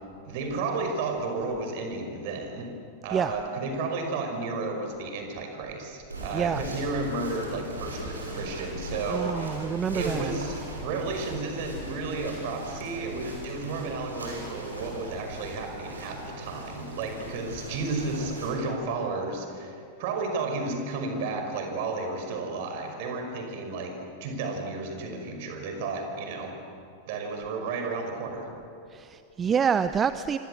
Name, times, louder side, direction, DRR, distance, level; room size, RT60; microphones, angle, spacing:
voice 1, 0.3-2.7 3.0-9.6 9.9-10.5 10.8-23.9 24.2-26.5 27.1-28.5, right 3 dB, 50° right, 4 dB, 5.4 m, -32 dB
sound 1, 6.1-18.5, right 1 dB, 80° right, 6.8 m, -39 dB
voice 2, 6.3-6.6 9.1-10.3 28.9-30.4, right 7 dB, 20° right, 13 dB, 0.7 m, -27 dB
27.5 x 25.5 x 8.0 m, 2.7 s
figure-of-eight pair, 90°, 0 cm